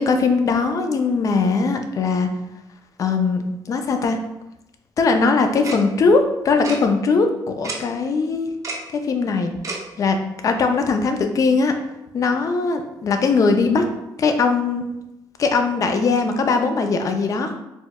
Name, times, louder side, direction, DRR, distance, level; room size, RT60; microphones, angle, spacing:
voice 1, 0.0-2.3 3.0-4.2 5.0-8.5 8.9-9.5 10.0-10.2 10.4-11.7 12.1-13.9 14.2-14.8 15.4-17.5, left 4 dB, 45° left, 6 dB, 0.4 m, -20 dB
Tick-tock, 5.6-5.8 6.6-6.8 7.6-7.8 8.6-8.8 9.6-9.8, right 3 dB, 40° right, 0.6 m, -28 dB
4.3 x 2.1 x 2.3 m, 0.90 s
cardioid pair, 110°, 8 cm